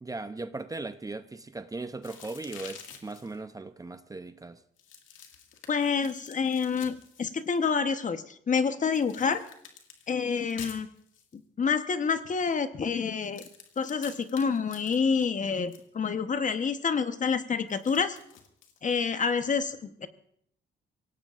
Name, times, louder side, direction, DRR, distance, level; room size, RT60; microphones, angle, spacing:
voice 1, 0.0-4.6, right 3 dB, 15° right, 0.6 m, -38 dB
sound 1, 2.0-3.4 4.8-7.7 8.9-11.4 13.2-15.8 17.7-18.8, left 7 dB, 85° left, 2.0 m, -49 dB
voice 2, 5.7-9.4 10.1-10.9 11.3-13.4 13.8-18.2 18.8-20.1, left 5 dB, 40° left, 1.1 m, -28 dB
24.5 x 17.5 x 2.5 m
cardioid pair, 90°, 20 cm